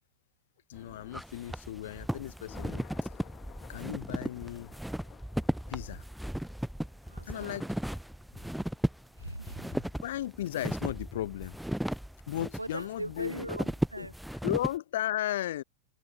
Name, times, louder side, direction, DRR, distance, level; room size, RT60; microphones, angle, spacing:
voice 1, 0.7-2.8 3.7-4.7 5.7-6.0 7.2-7.7 10.0-11.6 12.3-13.5 14.0-14.1 14.4-15.6, left 13 dB, 60° left, 0.7 m, -35 dB
sound 1, 0.7-14.8, equal, ahead, 0.4 m, -36 dB
Thunder, 1.7-13.0, left 11 dB, 30° left, 1.4 m, -58 dB
voice 2, 7.1-7.6 8.3-8.4 9.2-9.8 12.6-14.1, right 2 dB, 85° right, 0.5 m, -40 dB
figure-of-eight pair, 90°, 0 cm